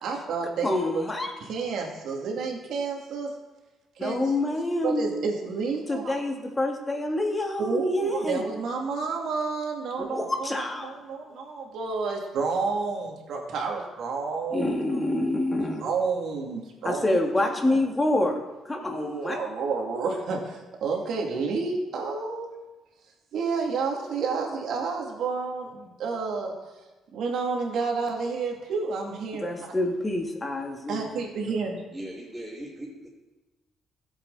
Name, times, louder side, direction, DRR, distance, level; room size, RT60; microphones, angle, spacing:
voice 1, 0.0-1.0 1.4-3.3 4.0-6.1 7.6-14.7 15.8-17.0 17.7-17.8 18.9-22.5 23.3-26.5 27.1-29.7 30.9-31.8, right 4 dB, 75° right, 0 dB, 2.7 m, -30 dB
voice 2, 0.6-1.3 4.0-5.1 5.9-8.4 10.1-10.9 14.5-15.9 16.8-18.4 18.7-19.4 29.4-31.0, left 1 dB, 20° left, 1 dB, 2.3 m, -27 dB
voice 3, 31.9-33.1, right 1 dB, 10° right, -5 dB, 3.0 m, -39 dB
15.0 x 8.3 x 4.2 m, 1.1 s
cardioid pair, 90°, 0 cm